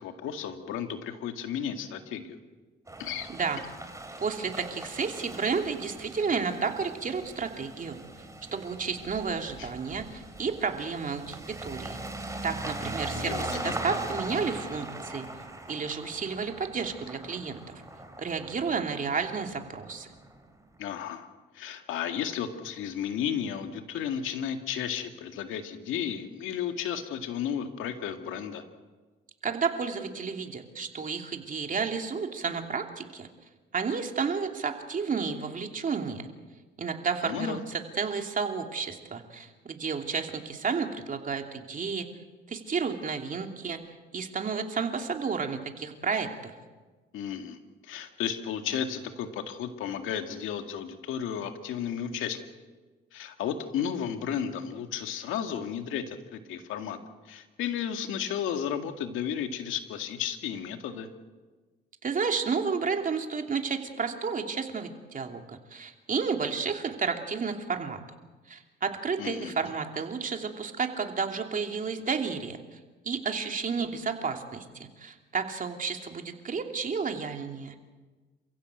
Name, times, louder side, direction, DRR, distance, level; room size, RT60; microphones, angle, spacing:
voice 1, 0.0-2.4 3.0-3.3 9.6-9.7 13.1-13.7 20.8-21.3 21.5-28.6 37.2-37.6 47.1-52.4 53.1-57.0 57.3-61.1 69.2-69.5, left 8 dB, 90° left, 6 dB, 2.1 m, -33 dB
sound 1, 2.9-20.5, right 2 dB, 15° right, 4.0 m, -40 dB
voice 2, 3.3-3.6 4.2-8.0 8.5-12.0 12.4-15.3 15.7-17.6 18.2-20.1 29.4-33.3 33.7-36.2 36.8-42.1 42.5-43.8 44.1-46.5 62.0-68.0 68.5-72.8 73.0-74.6 75.0-77.7, right 5 dB, 40° right, 4 dB, 2.9 m, -31 dB
28.5 x 16.0 x 8.0 m, 1.3 s
cardioid pair, 90°, 20 cm